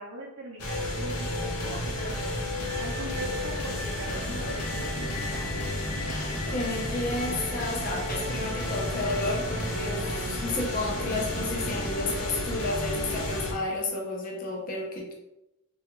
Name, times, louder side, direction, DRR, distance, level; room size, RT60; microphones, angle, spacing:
voice 1, 0.0-2.4 2.8-5.4, right 1 dB, 80° right, -4 dB, 0.5 m, -40 dB
sound 1, 0.6-13.5, left 1 dB, 85° left, 0.7 m, -32 dB
sound 2, 4.1-12.1, right 1 dB, 30° right, 0.3 m, -43 dB
voice 2, 6.0-15.1, left 2 dB, 40° left, -1 dB, 0.5 m, -32 dB
3.3 x 2.3 x 2.9 m, 0.90 s
head